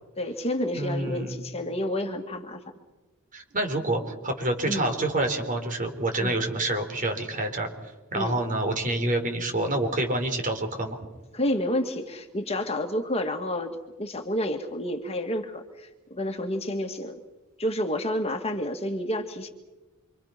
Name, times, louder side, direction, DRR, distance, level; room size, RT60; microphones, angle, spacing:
voice 1, 0.2-2.6 4.7-4.9 6.2-6.4 8.1-8.4 11.3-17.2 17.6-19.5, left 1 dB, 30° left, 4 dB, 2.1 m, -30 dB
voice 2, 0.7-1.4 3.3-11.0, right 2 dB, 35° right, 4 dB, 4.3 m, -28 dB
28.5 x 25.5 x 6.0 m, 1.1 s
head